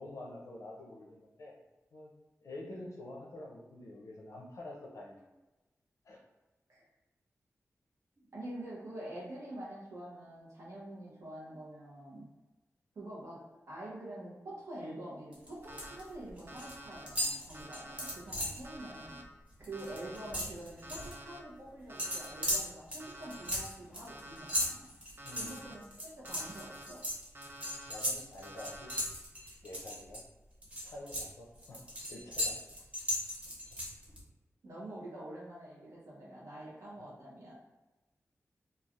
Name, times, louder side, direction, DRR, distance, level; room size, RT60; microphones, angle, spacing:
voice 1, 0.0-1.6 1.9-2.1 2.4-5.3 6.0-6.2 25.2-25.6 27.8-28.9 29.6-30.2 30.8-31.8 32.1-32.6, left 1 dB, 75° left, -2 dB, 0.5 m, -47 dB
voice 2, 8.2-12.3 12.9-13.4 13.7-24.9 25.3-27.0 34.6-37.5, right 1 dB, 85° right, -7 dB, 0.9 m, -46 dB
sound 1, 15.3-16.0 16.3-16.8 17.1-18.7 19.1-19.2 19.5-21.1 22.0-30.2 30.6-34.2, equal, 25° right, 0.8 m, -37 dB
Alarm, 15.6-16.0 16.5-17.0 17.5-18.1 18.6-19.2 19.7-20.3 20.8-21.4 21.9-22.5 23.0-23.6 24.1-24.7 25.2-25.7 26.2-26.8 27.3-27.9 28.4-29.0, right 1 dB, 45° right, 0.4 m, -49 dB
3.2 x 2.3 x 2.4 m, 1.1 s
wide cardioid pair, 135°, 5 cm